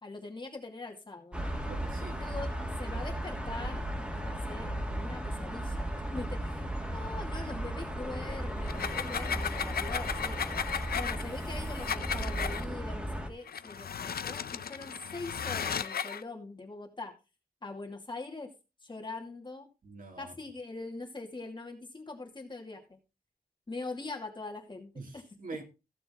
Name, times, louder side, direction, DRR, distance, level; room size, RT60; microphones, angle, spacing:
voice 1, 0.0-1.5 2.2-2.5 2.8-3.9 4.1-10.4 10.9-17.1 17.6-18.5 18.8-19.7 20.2-23.0 23.7-25.2, left 3 dB, 30° left, 2.4 m, -42 dB
sound 1, 1.3-13.3, right 1 dB, 5° right, 2.2 m, -35 dB
voice 2, 1.7-2.2 19.8-20.3 25.0-25.6, right 3 dB, 65° right, 2.9 m, -44 dB
sound 2, 8.6-12.6 13.5-16.2, left 7 dB, 85° left, 0.7 m, -35 dB
15.0 x 6.9 x 3.8 m
wide cardioid pair, 145°, 15 cm